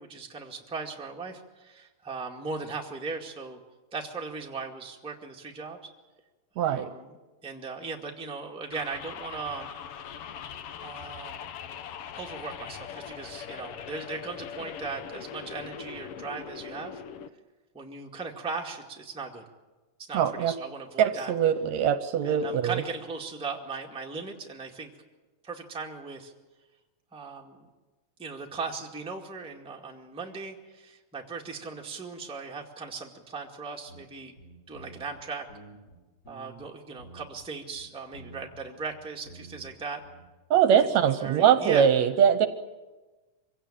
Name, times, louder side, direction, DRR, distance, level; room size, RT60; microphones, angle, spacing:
voice 1, 0.0-3.6 3.9-5.8 6.6-7.2 7.4-9.7 10.8-11.5 12.1-17.0 17.7-19.4 20.0-21.3 22.2-24.9 25.4-26.3 27.1-27.6 28.2-34.3 34.7-35.5 36.3-40.0 40.8-41.9, right 4 dB, ahead, 0 dB, 1.4 m, -38 dB
voice 2, 6.6-6.9 20.1-20.5 21.0-22.8 40.5-42.5, right 8 dB, 70° right, 11 dB, 2.0 m, -22 dB
sound 1, 8.7-17.3, left 8 dB, 70° left, 1.4 m, -41 dB
sound 2, 33.9-34.0 34.4-35.2 35.5-36.7 37.0-37.4 37.7-39.7 40.0-40.3, right 2 dB, 30° left, 4.7 m, -49 dB
24.5 x 16.5 x 8.8 m, 1.2 s
omnidirectional pair, 3.5 m